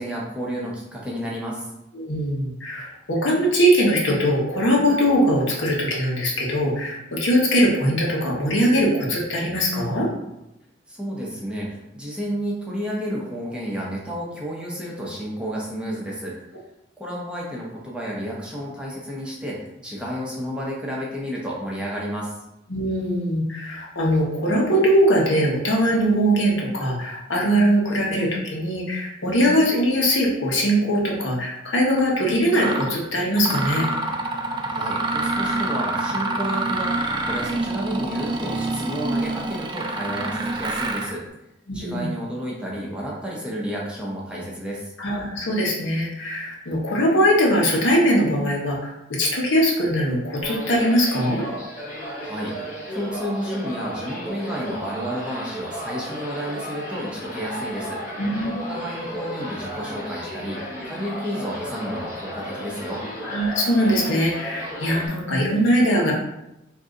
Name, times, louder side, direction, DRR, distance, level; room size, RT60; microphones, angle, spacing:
voice 1, 0.0-1.7 10.9-16.4 17.0-22.3 34.7-41.2 41.7-44.9 52.2-58.0 58.6-63.0, equal, 5° right, -5 dB, 0.7 m, -31 dB
voice 2, 1.9-10.1 22.7-33.8 41.7-42.1 45.0-51.4 58.2-58.7 63.2-66.1, equal, 85° left, -3 dB, 1.1 m, -21 dB
Mechanisms, 31.9-32.0 32.5-32.9 33.4-41.2, right 2 dB, 25° right, 0.3 m, -26 dB
sound 1, 50.4-65.1, equal, 45° left, 1.0 m, -34 dB
3.8 x 2.7 x 3.7 m, 0.87 s
head